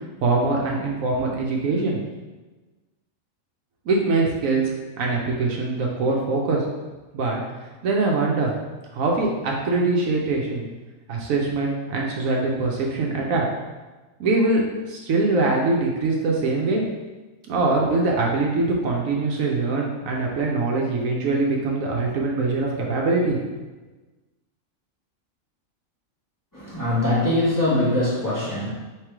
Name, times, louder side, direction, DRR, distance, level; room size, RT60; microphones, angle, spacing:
voice 1, 0.2-2.0 3.9-6.6 7.1-7.4 7.8-8.5 8.9-10.7 11.1-13.5 14.2-14.6 14.9-16.8 17.5-23.4, right 3 dB, 75° right, -1 dB, 1.1 m, -23 dB
voice 2, 26.5-28.7, left 1 dB, 15° left, -10 dB, 1.3 m, -22 dB
3.3 x 3.2 x 4.6 m, 1.2 s
omnidirectional pair, 1.5 m